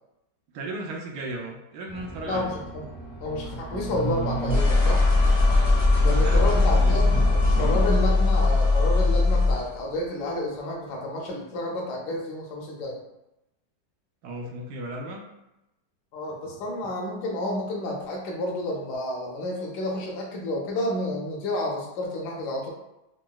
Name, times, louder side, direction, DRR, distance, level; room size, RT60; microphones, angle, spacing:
voice 1, 0.5-2.5 6.0-7.4 14.2-15.2 16.5-16.6, right 1 dB, 75° right, 0 dB, 1.1 m, -36 dB
sound 1, 1.9-9.7, left 2 dB, 25° left, 0.6 m, -21 dB
voice 2, 2.3-2.8 3.2-5.1 6.0-13.0 16.1-22.7, left 1 dB, 70° left, -1 dB, 1.2 m, -30 dB
3.8 x 2.1 x 2.2 m, 0.91 s
omnidirectional pair, 1.9 m